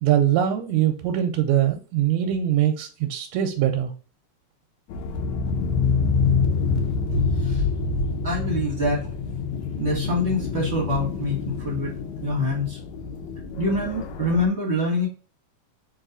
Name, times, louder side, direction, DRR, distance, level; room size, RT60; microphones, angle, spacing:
voice 1, 0.0-3.9, right 11 dB, 80° right, 4 dB, 1.7 m, -22 dB
sound 1, 4.9-14.5, left 5 dB, 80° left, 1.9 m, -27 dB
voice 2, 7.1-7.7 8.2-9.0 9.8-11.9 12.2-12.8 13.6-15.1, left 1 dB, 40° right, -2 dB, 1.0 m, -25 dB
4.8 x 2.8 x 3.8 m, 0.37 s
omnidirectional pair, 3.4 m